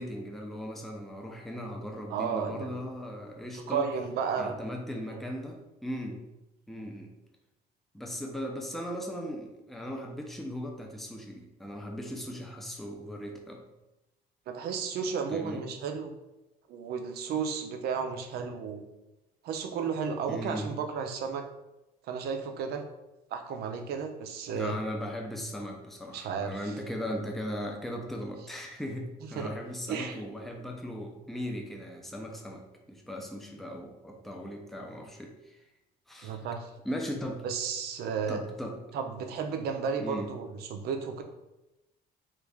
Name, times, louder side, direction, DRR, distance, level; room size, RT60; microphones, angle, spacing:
voice 1, 0.0-3.9 4.4-6.2 6.7-7.1 7.9-13.6 15.3-15.6 20.3-20.7 24.5-35.6 36.1-36.4 36.8-37.5 38.3-38.8 40.0-40.3, equal, ahead, 1 dB, 0.5 m, -38 dB
voice 2, 2.1-2.8 3.7-4.6 5.1-5.2 14.5-16.1 16.7-18.8 19.4-21.5 22.1-22.8 23.3-24.8 26.1-26.7 29.3-29.5 29.9-30.2 36.2-36.7 37.4-38.4 38.9-41.2, right 6 dB, 70° right, 5 dB, 0.5 m, -33 dB
3.1 x 2.5 x 3.5 m, 0.96 s
cardioid pair, 110°, 17 cm